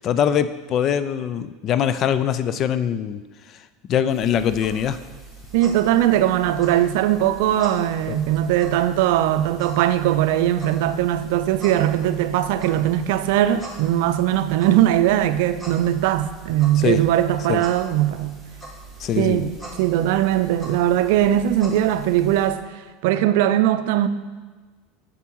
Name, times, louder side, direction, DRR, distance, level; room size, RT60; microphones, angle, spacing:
voice 1, 0.0-3.2 3.9-5.0 16.8-17.0 17.5-17.6 19.0-19.5, left 9 dB, 40° left, 0.5 m, -22 dB
sound 1, 4.1-22.5, right 2 dB, 5° left, 2.2 m, -42 dB
voice 2, 5.5-18.4 19.2-19.5 19.8-22.6 23.0-24.1, right 12 dB, 70° right, 0.5 m, -20 dB
7.3 x 7.0 x 4.6 m
supercardioid pair, 115°, 0 cm